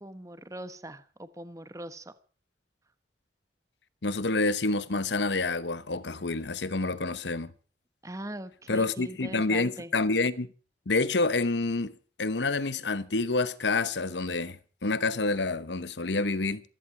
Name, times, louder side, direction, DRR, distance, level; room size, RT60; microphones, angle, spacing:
voice 1, 0.0-2.1 8.0-9.9, right 1 dB, 20° right, 1.1 m, -41 dB
voice 2, 4.0-7.5 8.7-10.5 10.9-16.6, left 3 dB, 75° left, 1.0 m, -28 dB
15.5 x 15.0 x 6.1 m
head